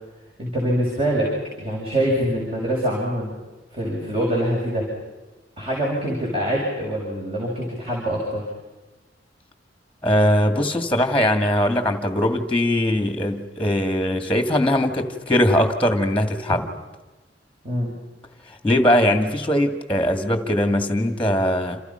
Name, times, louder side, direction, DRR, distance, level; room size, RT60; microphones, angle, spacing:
voice 1, 0.4-3.3 3.7-4.9 5.6-8.5 16.5-16.6 17.6-17.9, equal, 30° right, -4 dB, 7.2 m, -24 dB
voice 2, 10.0-16.6 18.5-21.8, left 1 dB, 10° left, 7 dB, 2.2 m, -20 dB
29.5 x 28.0 x 5.8 m, 1.1 s
head